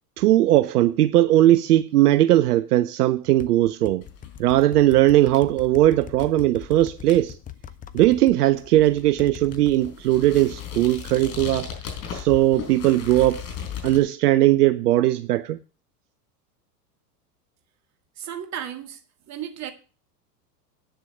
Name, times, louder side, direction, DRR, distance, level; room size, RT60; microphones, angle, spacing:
voice 1, 0.2-4.0 4.4-7.4 7.9-11.7 12.1-13.4 13.8-15.6, right 15 dB, 70° right, 0.7 m, -19 dB
sound 1, 3.4-8.3 9.2-9.8 11.2-12.3, left 10 dB, 15° left, 0.7 m, -41 dB
sound 2, 4.0-14.0, left 8 dB, 55° left, 5.5 m, -38 dB
voice 2, 18.2-19.0 19.3-19.7, right 10 dB, 35° right, 2.0 m, -34 dB
9.3 x 6.8 x 7.6 m
hypercardioid pair, 95°, 48 cm